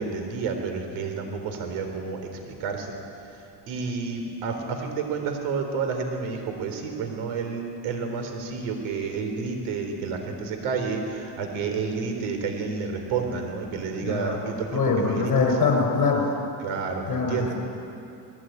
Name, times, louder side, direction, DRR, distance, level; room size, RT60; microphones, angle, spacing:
voice 1, 0.0-2.9 3.3-15.3 16.6-17.5, right 5 dB, 80° right, 4 dB, 3.9 m, -30 dB
voice 2, 14.0-14.4 14.7-16.2 17.1-17.5, left 4 dB, 40° left, 3 dB, 6.3 m, -23 dB
20.5 x 18.0 x 9.2 m, 2.7 s
cardioid pair, 105°, 48 cm